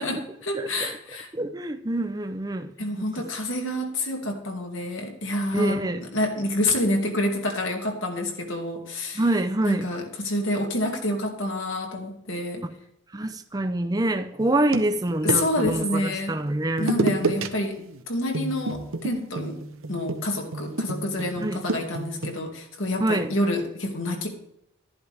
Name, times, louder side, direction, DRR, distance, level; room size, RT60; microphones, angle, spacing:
voice 1, 0.0-1.3 2.8-9.2 9.6-12.7 15.2-16.4 16.8-19.6 19.9-24.3, left 1 dB, 70° left, 2.3 m, -28 dB
voice 2, 0.5-0.9 1.3-2.7 5.5-6.0 9.2-9.9 13.1-16.9 21.4-21.6 23.0-23.3, right 1 dB, 20° right, 0.5 m, -26 dB
sound 1, 14.4-15.8 16.8-17.5 17.8-18.0 18.3-22.4, right 2 dB, 80° right, 0.9 m, -29 dB
12.5 x 11.0 x 3.5 m
head